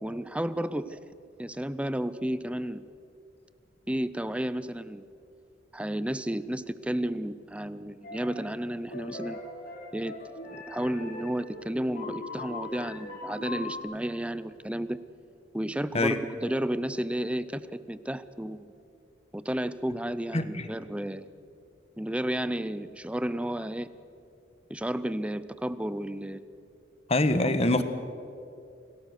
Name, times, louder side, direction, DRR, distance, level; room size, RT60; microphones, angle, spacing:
voice 1, 0.0-1.0 1.4-2.8 3.9-5.0 5.7-9.4 9.9-10.2 10.5-15.0 15.5-18.7 19.3-21.3 22.0-23.9 24.7-26.4 27.7-27.8, right 1 dB, 5° right, 15 dB, 0.6 m, -32 dB
sound 1, 8.0-8.5 8.9-13.8, left 2 dB, 50° left, 3.5 m, -40 dB
voice 2, 20.3-20.6 27.1-27.8, left 2 dB, 35° left, 10 dB, 1.3 m, -24 dB
26.5 x 18.0 x 6.6 m, 2.6 s
head